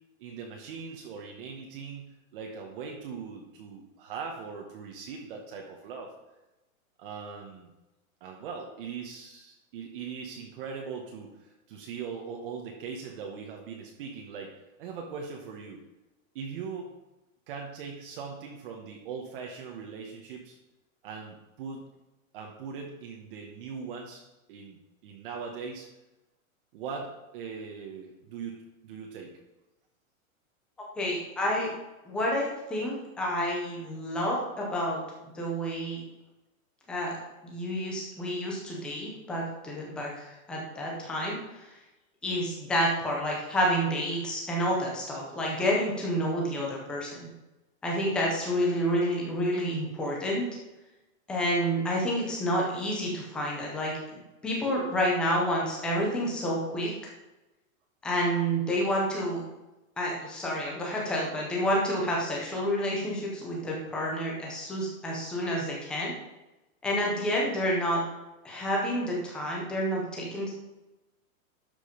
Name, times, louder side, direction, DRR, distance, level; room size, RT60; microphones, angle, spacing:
voice 1, 0.2-6.1 7.0-7.7 8.2-15.8 16.3-16.9 17.5-20.6 21.0-21.9 22.3-24.2 24.5-25.9 26.7-29.4, right 5 dB, 40° right, 1 dB, 1.1 m, -40 dB
voice 2, 31.0-31.7 32.1-35.0 35.3-36.0 36.9-37.2 37.4-41.7 42.2-47.3 47.8-50.4 51.3-56.9 58.0-59.4 60.0-66.1 66.8-68.0 68.4-70.6, equal, ahead, -3 dB, 0.4 m, -29 dB
12.0 x 5.2 x 5.0 m, 1.0 s
supercardioid pair, 170°, 42 cm